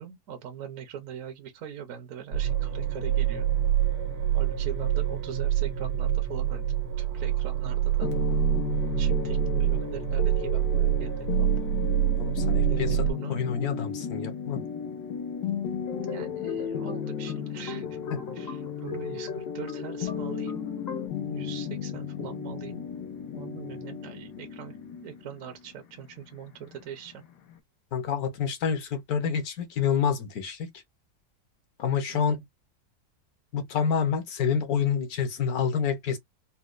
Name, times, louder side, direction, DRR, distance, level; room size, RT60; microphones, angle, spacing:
voice 1, 0.0-3.5 4.3-6.7 7.0-8.1 9.0-11.7 12.7-13.4 16.1-18.0 18.3-20.7 21.3-22.8 23.4-24.8 25.0-27.2 32.1-32.4, right 9 dB, 60° right, 1.0 m, -41 dB
sound 1, 2.3-13.1, right 12 dB, 90° right, 1.5 m, -26 dB
sound 2, 8.0-27.6, left 8 dB, 90° left, 1.4 m, -34 dB
voice 2, 12.2-13.0 13.3-14.6 27.9-30.7 31.8-32.4 33.5-36.2, left 7 dB, 65° left, 1.3 m, -28 dB
sound 3, 15.8-21.1, left 3 dB, 50° left, 0.9 m, -40 dB
4.2 x 2.2 x 2.4 m
omnidirectional pair, 1.8 m